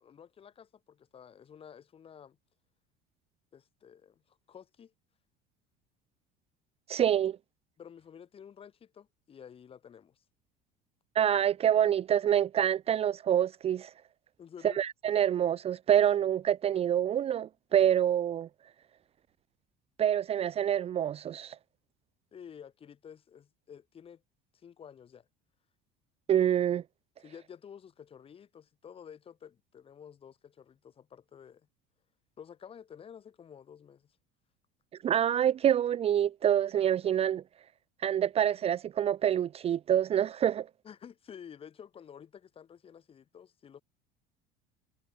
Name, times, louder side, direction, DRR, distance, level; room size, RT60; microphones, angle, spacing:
voice 1, 0.0-2.4 3.5-4.9 7.8-10.2 14.4-14.8 22.3-24.2 24.5-25.3 27.2-31.7 32.4-34.2 40.8-43.8, left 8 dB, 25° left, 5.7 m, -51 dB
voice 2, 6.9-7.4 11.1-13.9 14.8-18.5 20.0-21.6 26.3-26.8 35.0-37.4 38.0-40.7, right 10 dB, 30° right, 0.9 m, -26 dB
cardioid pair, 155°, 21 cm